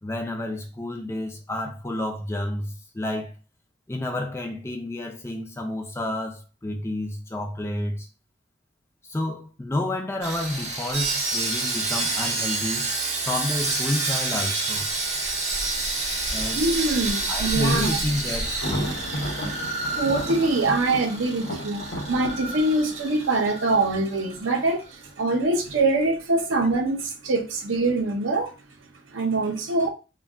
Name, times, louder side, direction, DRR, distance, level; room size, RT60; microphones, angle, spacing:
voice 1, 0.0-3.3 3.9-8.1 9.0-12.9 13.3-14.9 16.3-16.6 17.3-18.9, left 1 dB, 15° left, 0.4 m, -30 dB
Sawing, 10.2-24.5 24.7-24.9 25.4-25.5, right 3 dB, 35° right, 0.6 m, -29 dB
voice 2, 16.6-18.0 19.9-21.8 22.1-28.5 29.1-29.9, right 2 dB, 75° right, 0.6 m, -24 dB
Thunder, 18.5-24.3, equal, 80° left, 0.8 m, -34 dB
2.2 x 2.2 x 3.4 m
head